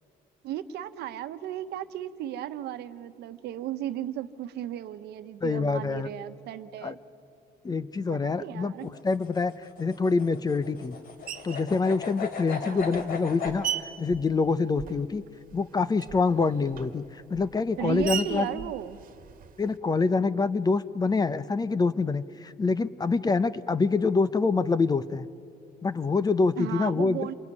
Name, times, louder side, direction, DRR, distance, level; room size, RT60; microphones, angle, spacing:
voice 1, 0.4-7.0 8.2-8.9 12.6-13.1 17.8-19.0 26.5-27.3, right 12 dB, 75° right, 10 dB, 1.2 m, -35 dB
voice 2, 5.4-6.1 6.8-6.9 7.6-9.5 9.8-11.0 11.4-13.7 14.0-15.2 15.5-18.5 19.6-25.3 25.8-27.2, left 4 dB, 25° left, 15 dB, 0.8 m, -26 dB
sound 1, 8.8-13.6, left 6 dB, 60° left, 3.2 m, -37 dB
Screech, 11.3-11.7 12.5-15.2 15.5-19.8, right 8 dB, 55° right, 1.6 m, -38 dB
27.5 x 22.0 x 9.7 m, 2.7 s
cardioid pair, 110°, 17 cm